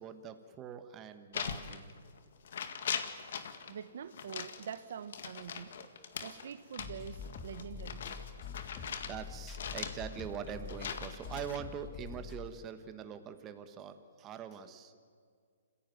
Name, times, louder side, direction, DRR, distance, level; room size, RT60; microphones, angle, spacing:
voice 1, 0.0-1.9 3.6-3.7 5.8-6.1 8.3-15.0, right 8 dB, 20° right, 1.4 m, -44 dB
sound 1, 1.3-2.2 2.4-3.7 4.1-9.2 9.5-11.6, left 7 dB, 60° left, 2.0 m, -41 dB
voice 2, 3.7-5.8 6.2-8.1, right 8 dB, 60° right, 1.0 m, -45 dB
sound 2, 6.8-12.5, left 6 dB, 25° left, 1.7 m, -46 dB
27.0 x 16.0 x 9.4 m
hypercardioid pair, 155°, 0 cm